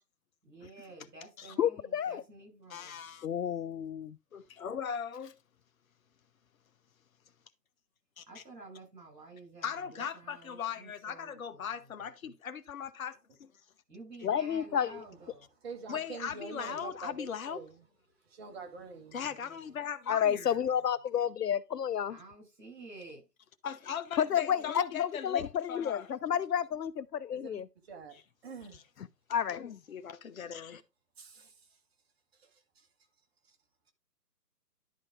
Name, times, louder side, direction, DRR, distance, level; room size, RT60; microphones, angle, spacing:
voice 1, 0.5-3.0 8.3-12.1 13.9-15.5 19.3-19.7 22.1-23.2, right 2 dB, 80° right, 6.1 m, -51 dB
voice 2, 1.6-2.2 3.2-4.2 14.2-15.0 20.1-22.2 24.2-27.7 29.3-29.8, left 9 dB, 75° left, 0.6 m, -30 dB
voice 3, 2.7-3.3 4.3-5.3 8.2-8.4 9.6-13.2 15.9-17.6 19.1-20.5 23.6-25.4 25.7-26.1 28.7-28.8 29.5-30.8, left 7 dB, 55° left, 1.0 m, -39 dB
voice 4, 15.6-17.8 18.3-19.3 27.3-28.8 31.2-31.5, right 4 dB, 40° right, 2.0 m, -46 dB
11.0 x 4.2 x 4.8 m
figure-of-eight pair, 140°, 48 cm